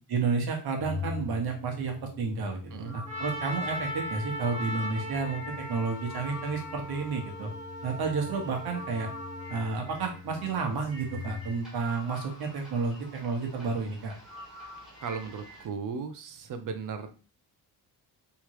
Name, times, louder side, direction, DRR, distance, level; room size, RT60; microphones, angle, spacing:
voice 1, 0.1-5.4 5.7-7.5 7.8-9.1 9.5-14.1, right 4 dB, 65° right, 3 dB, 1.2 m, -31 dB
Organ, 0.8-11.8, left 5 dB, 20° left, 0.4 m, -44 dB
sound 1, 2.7-15.7, left 1 dB, ahead, 1.6 m, -48 dB
Trumpet, 3.0-9.6, left 1 dB, 20° right, 1.2 m, -38 dB
voice 2, 15.0-17.1, right 5 dB, 50° right, 8 dB, 0.7 m, -36 dB
3.5 x 3.0 x 4.6 m, 0.36 s
cardioid pair, 180°, 40 cm